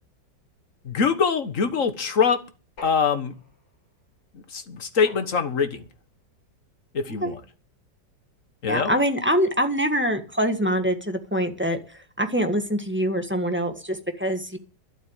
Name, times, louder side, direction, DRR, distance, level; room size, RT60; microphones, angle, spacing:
voice 1, 0.8-2.4 2.8-3.3 4.3-5.8 6.9-7.4 8.6-8.9, left 6 dB, 45° left, 9 dB, 1.7 m, -23 dB
sound 1, 2.8-3.8 5.1-5.9, left 2 dB, 75° left, 4.2 m, -46 dB
voice 2, 8.7-11.8 12.2-14.6, equal, 5° right, 6 dB, 1.4 m, -24 dB
12.0 x 7.9 x 9.0 m, 0.36 s
omnidirectional pair, 2.0 m